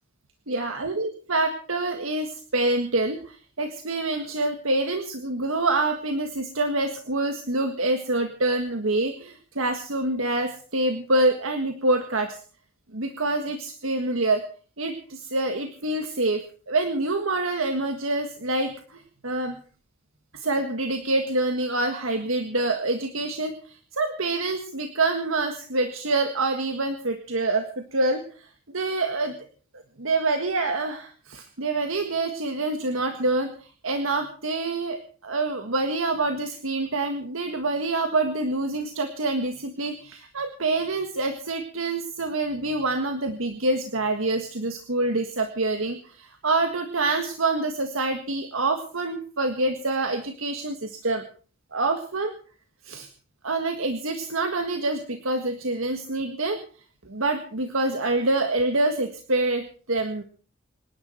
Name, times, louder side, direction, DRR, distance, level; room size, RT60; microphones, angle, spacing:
voice 1, 0.5-12.4 12.9-14.4 14.8-16.4 16.7-19.6 20.3-29.4 30.0-51.2 51.7-52.3 52.8-53.1 53.4-56.6 57.0-60.2, right 2 dB, 80° right, 6 dB, 1.6 m, -26 dB
26.0 x 11.0 x 4.5 m, 0.41 s
head